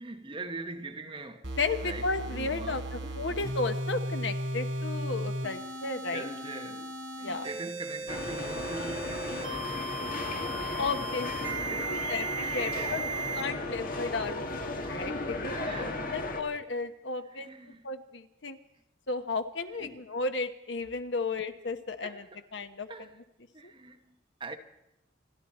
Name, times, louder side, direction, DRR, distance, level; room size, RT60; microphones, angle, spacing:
voice 1, 0.0-1.5 1.8-2.1 2.3-3.6 5.4-5.5 6.1-10.9 11.7-12.1 12.6-13.7 14.8-15.0 15.5-16.1 17.2-17.9 19.7-20.0 22.0-22.5 22.9-23.2 23.5-24.6, right 2 dB, 25° right, 1.1 m, -43 dB
sound 1, 1.4-13.4, right 2 dB, 80° right, 3.6 m, -36 dB
voice 2, 1.6-6.3 7.2-7.5 10.8-13.0 13.4-17.5 17.8-18.6 19.1-22.2 22.5-22.9 23.6-23.7, left 3 dB, 65° left, 1.1 m, -34 dB
sound 2, 8.1-16.4, left 2 dB, 45° left, 1.7 m, -35 dB
28.0 x 12.0 x 4.3 m
head